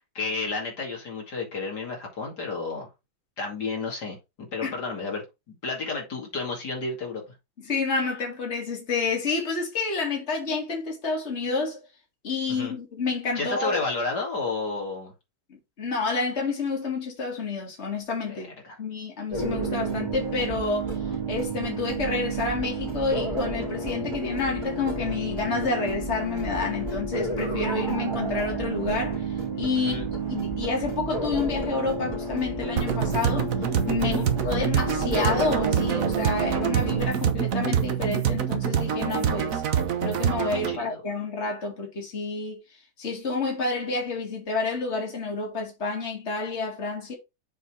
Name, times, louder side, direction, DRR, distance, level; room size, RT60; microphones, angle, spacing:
voice 1, 0.1-2.9 3.4-4.2 4.5-7.2 12.5-12.7 13.3-15.1 18.3-18.4 18.6-18.8 29.8-30.1 34.1-34.2 40.6-41.0, left 3 dB, 70° left, 2.9 m, -31 dB
voice 2, 7.6-11.8 12.2-13.8 15.8-20.9 21.3-29.3 29.6-30.0 30.3-33.5 33.9-39.6 40.0-42.6 43.0-47.1, left 4 dB, 40° left, 2.6 m, -29 dB
sound 1, 19.3-37.1, right 3 dB, 35° right, 2.6 m, -30 dB
sound 2, 32.8-40.8, right 8 dB, 55° right, 1.3 m, -26 dB
7.2 x 4.0 x 4.8 m
omnidirectional pair, 1.8 m